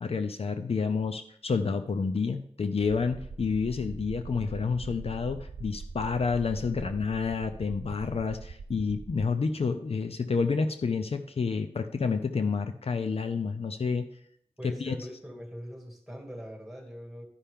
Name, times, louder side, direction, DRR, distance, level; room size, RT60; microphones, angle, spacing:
voice 1, 0.0-14.1 14.6-15.0, left 5 dB, 65° left, 8 dB, 0.6 m, -29 dB
sound 1, 3.1-9.2, right 3 dB, 60° right, 0.5 m, -42 dB
voice 2, 14.6-17.2, equal, 5° right, 1 dB, 2.2 m, -42 dB
11.5 x 5.6 x 3.6 m, 0.66 s
wide cardioid pair, 60°, 11 cm